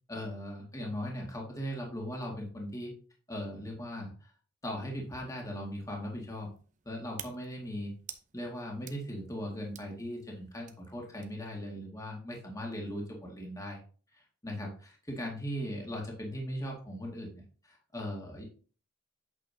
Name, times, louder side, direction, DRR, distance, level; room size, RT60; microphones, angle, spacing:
voice 1, 0.1-2.9 3.3-4.3 4.6-6.5 6.9-7.9 8.3-13.8 14.1-18.4, equal, 20° left, -1 dB, 1.9 m, -39 dB
sound 1, 5.3-11.6, right 9 dB, 40° right, 0.8 m, -52 dB
8.5 x 6.6 x 2.8 m, 0.39 s
head